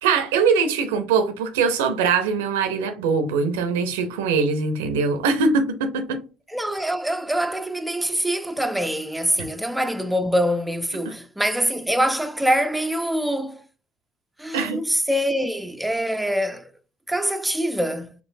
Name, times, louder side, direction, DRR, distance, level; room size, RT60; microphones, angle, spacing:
voice 1, 0.0-6.2 9.4-9.5 14.5-14.8, right 5 dB, 75° right, 0.6 m, -22 dB
voice 2, 6.5-13.7 14.4-16.7 17.1-18.1, equal, 5° right, 0.5 m, -24 dB
5.3 x 3.0 x 2.6 m
figure-of-eight pair, 55°, 0 cm